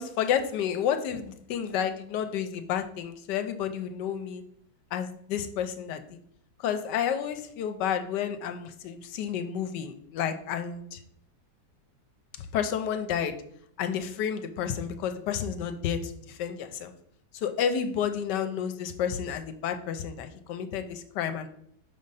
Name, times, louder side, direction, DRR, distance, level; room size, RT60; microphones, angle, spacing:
voice 1, 0.0-4.4 4.9-6.2 6.6-11.0 12.4-13.3 13.8-16.9 17.3-21.5, left 8 dB, 80° left, 8 dB, 1.3 m, -31 dB
5.3 x 3.8 x 5.5 m, 0.68 s
omnidirectional pair, 1.9 m